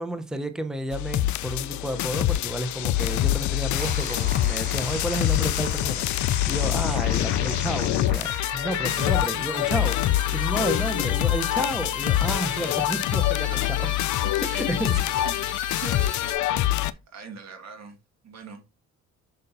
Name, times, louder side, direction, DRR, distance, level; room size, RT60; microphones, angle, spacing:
voice 1, 0.0-10.0 10.3-13.8 14.4-15.0, right 1 dB, ahead, 0.9 m, -31 dB
sound 1, 0.9-16.9, left 14 dB, 70° left, 0.5 m, -25 dB
sound 2, 3.6-10.6 11.4-11.5, right 4 dB, 25° right, 0.9 m, -40 dB
sound 3, 8.9-16.3, left 2 dB, 15° left, 2.7 m, -42 dB
voice 2, 13.5-14.3 14.8-15.3 15.8-16.2 16.6-18.0 18.2-18.6, right 4 dB, 60° right, 2.1 m, -42 dB
6.4 x 5.5 x 2.7 m
cardioid pair, 90°, 30 cm